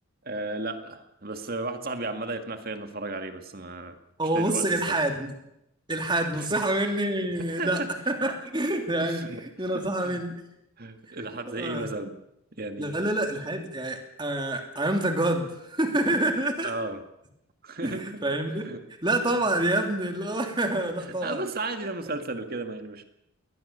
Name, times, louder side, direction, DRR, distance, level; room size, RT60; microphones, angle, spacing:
voice 1, 0.2-4.0 4.3-4.9 6.4-6.5 7.6-7.9 9.0-9.4 9.7-10.2 10.8-12.1 12.6-13.1 16.6-17.0 17.6-18.2 18.6-18.8 21.0-23.0, right 2 dB, 45° right, 7 dB, 2.0 m, -34 dB
voice 2, 4.2-5.3 5.9-10.4 11.1-11.2 11.5-11.9 12.8-16.7 17.8-18.7 19.0-21.4, right 1 dB, 20° right, 4 dB, 2.8 m, -27 dB
21.5 x 19.5 x 6.9 m, 0.84 s
head